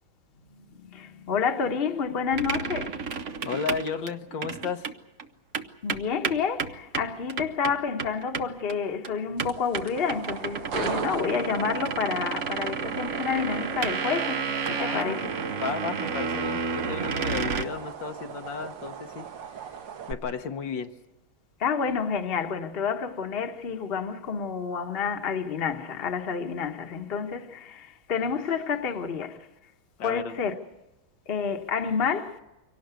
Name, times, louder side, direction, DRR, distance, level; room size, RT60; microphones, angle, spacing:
voice 1, 0.8-3.0 5.8-15.3 21.6-29.4 30.0-30.5 31.3-32.4, left 6 dB, 35° left, 1.3 m, -29 dB
sound 1, 2.3-4.9 5.2-5.3 5.5-8.8 9.0-9.1 9.4-17.6, right 5 dB, 50° right, 1.0 m, -31 dB
voice 2, 3.4-4.9 14.8-15.2 15.6-19.6 20.1-20.9 30.0-30.3, left 6 dB, 70° left, 1.6 m, -33 dB
sound 2, 9.4-20.1, right 7 dB, 70° right, 1.9 m, -38 dB
24.5 x 18.0 x 8.1 m
omnidirectional pair, 2.2 m